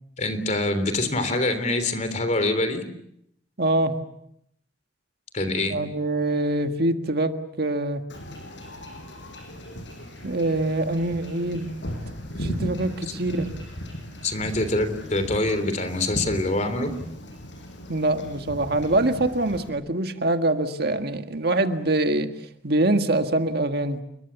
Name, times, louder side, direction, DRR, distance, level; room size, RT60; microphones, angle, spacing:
voice 1, 0.2-2.8 5.3-5.8 13.1-13.2 14.2-16.9, left 2 dB, 40° left, 10 dB, 3.4 m, -25 dB
voice 2, 3.6-4.0 5.7-8.0 10.2-11.7 12.3-13.5 17.9-22.3 22.6-24.0, right 2 dB, 60° right, 7 dB, 1.8 m, -24 dB
Wind / Ocean / Boat Water vehicle, 8.1-19.7, equal, 75° left, 5.5 m, -37 dB
29.5 x 22.0 x 7.2 m, 0.73 s
head